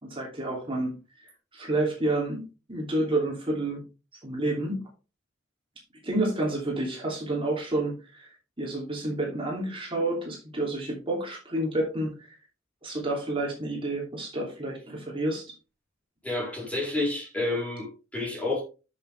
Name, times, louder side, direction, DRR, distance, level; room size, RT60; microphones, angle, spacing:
voice 1, 0.0-0.9 1.5-2.4 2.7-3.8 4.2-4.8 6.0-12.4 12.8-15.5, right 2 dB, 25° right, 2.8 m, -29 dB
voice 2, 16.2-18.6, left 2 dB, 5° left, 3.9 m, -29 dB
10.5 x 6.8 x 3.4 m
head